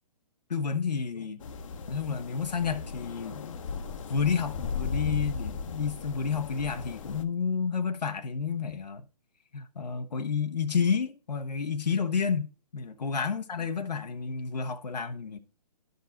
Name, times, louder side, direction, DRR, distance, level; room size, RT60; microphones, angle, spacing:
voice 1, 0.5-1.4 1.9-3.6 4.1-9.0 9.5-15.4, left 6 dB, 90° left, 0.9 m, -30 dB
sound 1, 1.4-7.2, left 5 dB, 50° left, 0.9 m, -37 dB
11.5 x 5.3 x 3.9 m
hypercardioid pair, 145°, 20 cm